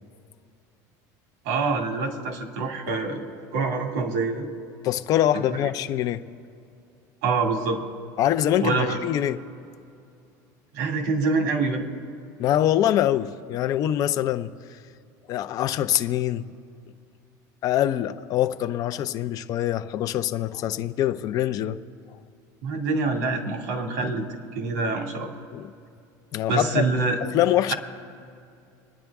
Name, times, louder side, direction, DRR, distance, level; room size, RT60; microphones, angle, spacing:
voice 1, 1.4-4.5 5.3-5.7 7.2-7.8 8.6-9.0 10.7-11.8 22.6-24.2 24.5-25.3 26.5-27.2, right 3 dB, 75° right, 2.3 m, -26 dB
voice 2, 4.8-6.2 8.2-9.4 12.4-14.5 15.3-16.4 17.6-21.8 25.5-25.7 26.3-26.8 27.3-27.7, left 12 dB, 40° left, 0.5 m, -24 dB
26.0 x 10.0 x 3.6 m
cardioid pair, 145°, 9 cm